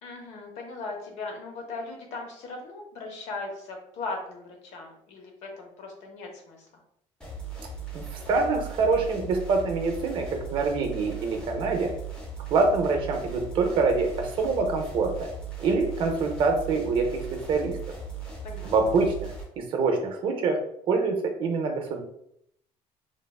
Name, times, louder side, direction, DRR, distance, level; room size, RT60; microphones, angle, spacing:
voice 1, 0.0-6.8 18.4-18.7, left 3 dB, 70° left, 2 dB, 0.7 m, -38 dB
sound 1, 7.2-19.4, right 4 dB, 5° left, 0.5 m, -38 dB
voice 2, 7.9-11.9 12.5-15.3 15.6-17.8 18.6-19.3 19.6-20.6 20.9-22.0, right 4 dB, 45° right, 3 dB, 0.5 m, -25 dB
3.2 x 2.2 x 2.3 m, 0.72 s
cardioid pair, 170°, 12 cm